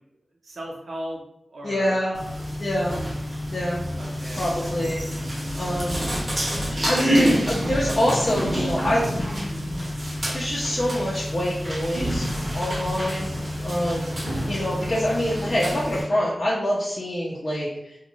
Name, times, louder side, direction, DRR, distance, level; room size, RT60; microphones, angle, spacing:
voice 1, 0.4-1.2 1.5-2.3 4.0-4.4, equal, 85° right, -2 dB, 0.6 m, -37 dB
voice 2, 1.6-2.1 2.6-3.0 3.5-3.8 4.3-5.0 5.5-6.1 6.8-9.4 10.0-13.3 13.6-18.0, equal, 50° left, -7 dB, 0.6 m, -26 dB
sound 1, 2.1-16.0, equal, 35° right, 0.9 m, -27 dB
2.5 x 2.2 x 3.0 m, 0.81 s
wide cardioid pair, 65°, 0 cm